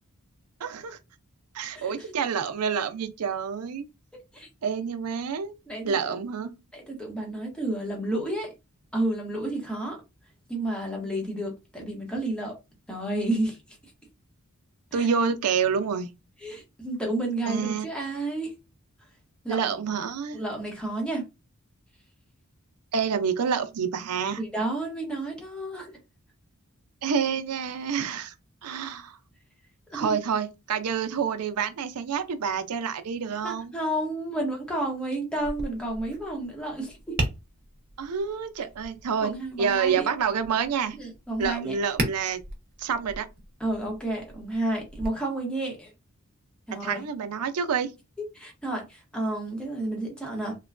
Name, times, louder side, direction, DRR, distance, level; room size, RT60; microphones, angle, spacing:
voice 1, 0.6-1.0 1.5-3.8 4.6-5.5 5.8-6.5 14.9-16.1 17.5-17.9 19.5-20.4 22.9-24.4 27.0-28.3 28.6-29.2 29.9-33.7 38.0-39.3 39.6-41.0 41.4-42.4 42.8-43.3 46.8-47.9, right 6 dB, 90° right, 0.5 m, -28 dB
voice 2, 1.7-2.1 4.3-4.5 5.7-6.1 6.7-8.5 8.9-10.0 10.5-12.5 12.9-13.6 14.9-15.1 16.4-18.5 19.4-19.7 20.3-21.3 24.4-25.9 29.9-30.2 33.4-37.2 39.2-40.1 41.0-41.7 43.6-45.9 46.7-47.0 48.2-50.6, right 1 dB, 5° left, 0.8 m, -31 dB
Tap, 35.4-45.1, right 1 dB, 45° right, 0.8 m, -37 dB
3.1 x 2.2 x 2.4 m
head